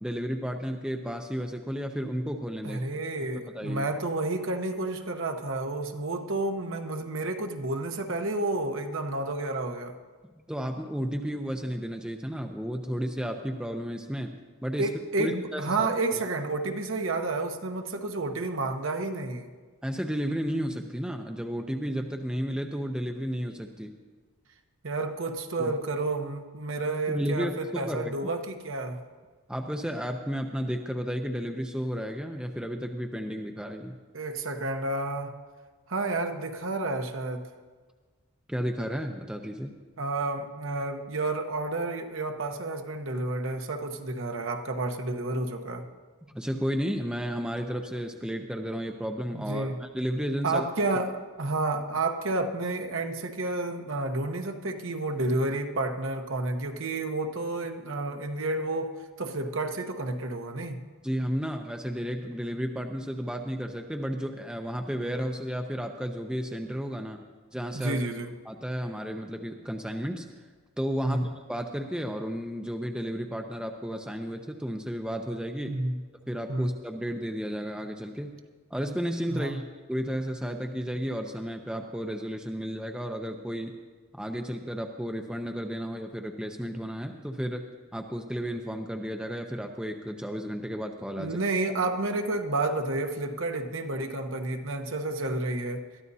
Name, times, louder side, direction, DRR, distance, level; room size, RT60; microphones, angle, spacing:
voice 1, 0.0-2.8 3.3-3.8 10.5-14.9 15.2-15.9 19.8-24.0 25.6-25.7 27.1-28.3 29.5-34.0 38.5-39.7 46.3-50.7 61.0-67.2 67.5-68.0 68.5-70.3 70.8-75.8 76.3-78.3 78.7-79.6 79.9-83.7 84.1-87.6 87.9-91.4, equal, 5° right, 4 dB, 0.6 m, -33 dB
voice 2, 2.6-9.9 14.8-19.5 24.8-29.0 34.1-35.3 35.9-37.4 40.0-45.8 49.3-49.8 50.4-60.8 67.7-68.3 71.0-71.3 75.7-76.0 76.5-76.7 79.3-79.6 91.2-95.8, right 2 dB, 60° right, 6 dB, 1.0 m, -30 dB
21.5 x 13.5 x 2.8 m, 1.4 s
head